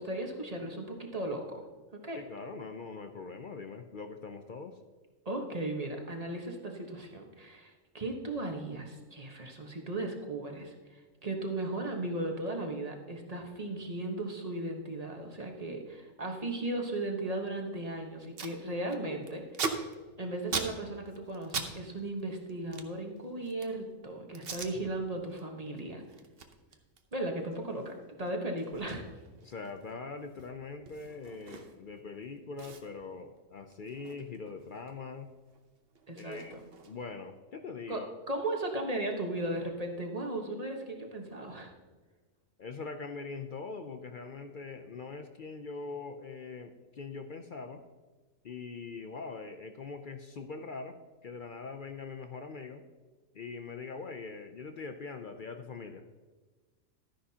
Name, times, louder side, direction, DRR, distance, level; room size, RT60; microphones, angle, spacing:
voice 1, 0.0-1.6 2.0-2.2 5.2-19.9 20.2-26.0 27.1-29.1 36.1-36.6 37.9-41.7, right 2 dB, 30° right, 2 dB, 1.3 m, -36 dB
voice 2, 2.1-4.8 29.4-35.3 36.2-36.6 36.9-38.1 42.6-47.8 48.4-51.0 51.2-52.8 53.3-56.2, left 4 dB, 55° left, 7 dB, 0.5 m, -42 dB
Packing tape duct tape, 17.8-17.9 18.1-18.6 18.9-21.7 22.0-23.8 24.3-24.7 25.2-25.4 25.7-32.2 32.6-34.9 35.2-37.2, right 5 dB, 50° right, 1.0 m, -41 dB
12.5 x 10.0 x 2.8 m, 1.3 s
omnidirectional pair, 1.4 m